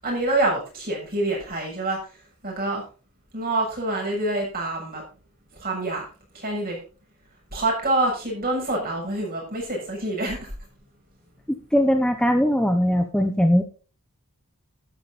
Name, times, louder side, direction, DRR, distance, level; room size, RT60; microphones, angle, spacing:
voice 1, 0.0-2.0 2.4-2.8 3.3-5.0 5.5-6.1 6.3-6.8 7.5-10.5, right 2 dB, 40° right, -1 dB, 7.0 m, -26 dB
voice 2, 11.5-13.6, equal, 5° left, 6 dB, 0.8 m, -20 dB
12.5 x 9.6 x 4.1 m, 0.37 s
head